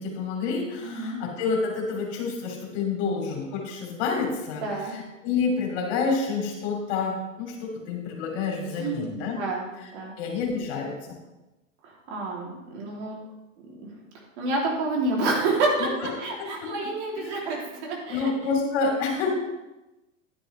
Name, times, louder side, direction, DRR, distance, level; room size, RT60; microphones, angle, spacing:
voice 1, 0.0-9.4 9.8-9.9 10.2-10.9 15.8-16.1 16.4-16.9 17.2-17.6 18.1-19.3, left 4 dB, 55° left, 0 dB, 3.2 m, -29 dB
voice 2, 0.8-1.2 4.6-4.9 8.8-9.0 9.4-9.7 9.9-10.1 11.8-13.2 13.8-13.9 14.4-18.3, right 2 dB, 55° right, -2 dB, 3.3 m, -28 dB
10.5 x 10.0 x 3.4 m, 1.0 s
hypercardioid pair, 105°, 40 cm